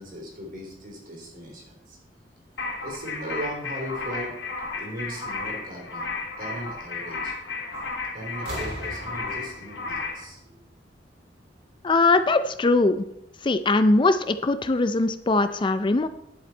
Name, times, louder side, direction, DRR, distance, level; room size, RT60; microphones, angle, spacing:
voice 1, 0.0-2.0 2.8-4.4 4.8-7.4 8.1-10.6, equal, 50° right, 0 dB, 3.6 m, -38 dB
sound 1, 2.6-10.2, left 4 dB, 85° left, 2.1 m, -33 dB
sound 2, 7.7-8.0 8.3-11.1 12.2-12.3, right 1 dB, 70° right, 3.3 m, -40 dB
voice 2, 11.8-13.1 13.4-16.1, left 3 dB, 30° left, 11 dB, 0.4 m, -21 dB
11.0 x 7.7 x 4.4 m, 0.79 s
head